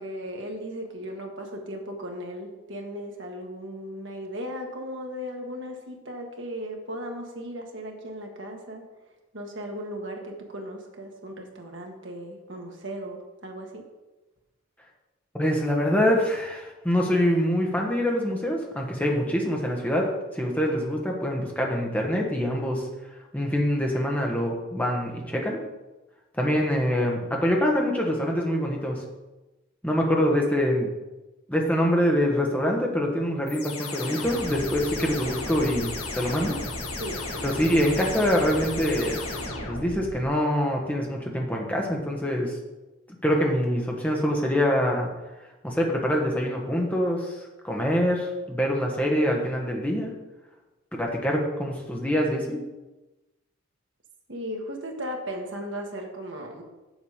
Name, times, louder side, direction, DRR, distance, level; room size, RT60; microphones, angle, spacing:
voice 1, 0.0-8.8 9.3-13.8 37.0-37.2 54.3-56.6, equal, 55° right, 2 dB, 1.4 m, -36 dB
voice 2, 15.3-22.9 23.3-25.6 26.4-29.0 29.8-30.9 31.5-36.6 37.4-39.2 39.7-42.6 43.2-45.1 45.6-47.4 47.6-50.1 51.0-52.6, equal, 5° left, 0 dB, 1.2 m, -25 dB
sound 1, 33.5-40.3, left 2 dB, 90° left, 1.7 m, -34 dB
7.1 x 7.0 x 5.0 m, 1.1 s
head